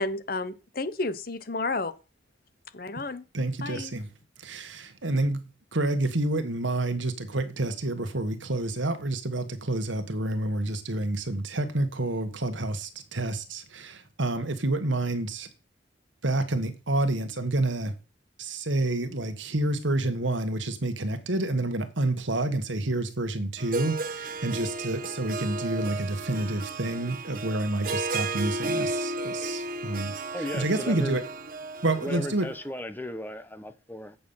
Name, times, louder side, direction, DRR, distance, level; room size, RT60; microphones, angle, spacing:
voice 1, 0.0-1.9 2.7-3.2 3.6-3.9, left 3 dB, 50° left, 0.9 m, -31 dB
voice 2, 3.3-4.1 4.4-5.4 5.7-15.5 16.2-17.9 18.4-30.1 30.5-31.2 31.8-32.5, right 2 dB, 75° right, 1.5 m, -28 dB
Harp, 23.6-32.6, right 2 dB, 45° right, 1.1 m, -33 dB
voice 3, 30.3-31.2 32.0-34.2, left 1 dB, 10° left, 0.9 m, -36 dB
8.6 x 6.9 x 5.6 m
head